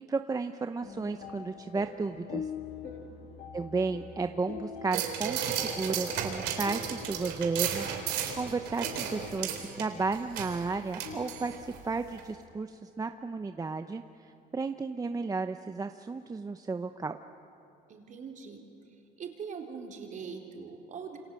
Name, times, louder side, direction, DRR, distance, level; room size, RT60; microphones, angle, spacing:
voice 1, 0.1-2.5 3.5-9.5 9.7-17.2, right 4 dB, 20° right, 8 dB, 0.8 m, -33 dB
sound 1, 0.8-12.6, left 6 dB, 75° left, 2.1 m, -45 dB
sound 2, 4.9-11.8 12.2-12.3, right 9 dB, 85° right, 3.6 m, -34 dB
voice 2, 17.9-18.6 19.2-21.2, right 6 dB, 50° right, 1 dB, 4.2 m, -42 dB
28.0 x 26.0 x 7.7 m, 2.9 s
cardioid pair, 110°, 17 cm